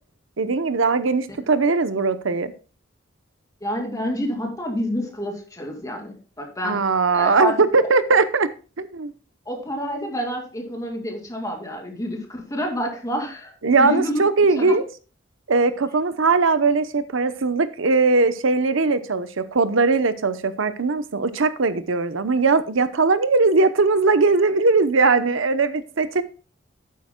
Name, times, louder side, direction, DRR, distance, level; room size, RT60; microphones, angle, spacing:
voice 1, 0.4-2.5 6.6-8.5 8.8-9.1 13.6-14.8 15.5-26.2, right 3 dB, 90° right, 13 dB, 0.8 m, -20 dB
voice 2, 3.6-6.8 7.1-7.5 9.5-14.8, equal, 20° left, 1 dB, 2.5 m, -28 dB
11.5 x 9.3 x 2.2 m, 0.35 s
head